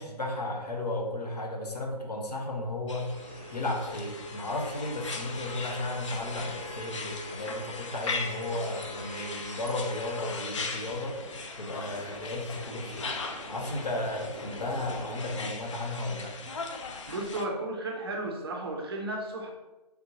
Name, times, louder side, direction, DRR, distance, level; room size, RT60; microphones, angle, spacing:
voice 1, 0.0-3.1 3.5-11.2 11.6-13.1 13.5-16.3, left 1 dB, 75° left, 1 dB, 0.8 m, -34 dB
sound 1, 2.9-17.5, left 3 dB, 50° left, 0.4 m, -39 dB
sound 2, 3.1-10.3 10.7-15.5, right 1 dB, 5° right, 0.9 m, -47 dB
voice 2, 17.1-19.5, right 2 dB, 35° right, 2 dB, 0.5 m, -34 dB
3.4 x 2.6 x 2.8 m, 1.1 s
figure-of-eight pair, 140°, 21 cm